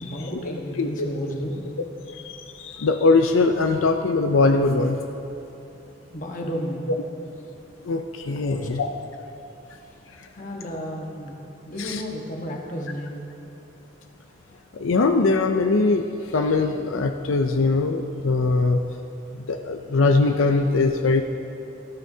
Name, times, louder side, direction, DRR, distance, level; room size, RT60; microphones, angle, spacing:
voice 1, 0.0-1.6 6.1-6.9 8.4-8.7 9.8-10.0 10.3-11.4 11.6-13.2, equal, 40° left, 0 dB, 1.3 m, -32 dB
voice 2, 2.1-5.0 7.8-8.9 10.2-10.3 11.8-12.0 14.7-18.8 19.3-21.2, left 3 dB, 85° left, 5 dB, 0.5 m, -21 dB
17.5 x 13.0 x 2.8 m, 2.9 s
head